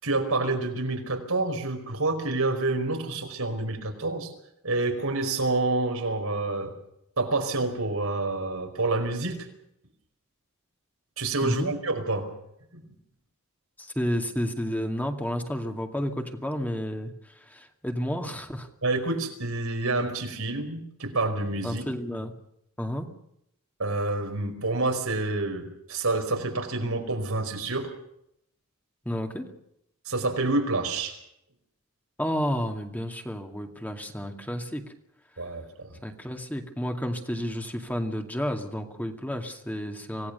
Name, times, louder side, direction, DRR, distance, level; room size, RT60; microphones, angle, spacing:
voice 1, 0.0-4.3 4.6-6.7 7.2-9.4 11.2-12.3 12.7-12.8 18.8-21.8 23.8-27.9 30.0-31.2 35.4-36.0, right 2 dB, 90° right, 4 dB, 5.0 m, -28 dB
voice 2, 11.4-11.7 13.8-18.7 21.6-22.3 22.8-23.1 29.1-29.5 32.2-34.9 36.0-40.3, equal, 10° left, 4 dB, 2.2 m, -31 dB
26.0 x 18.0 x 6.9 m, 0.76 s
head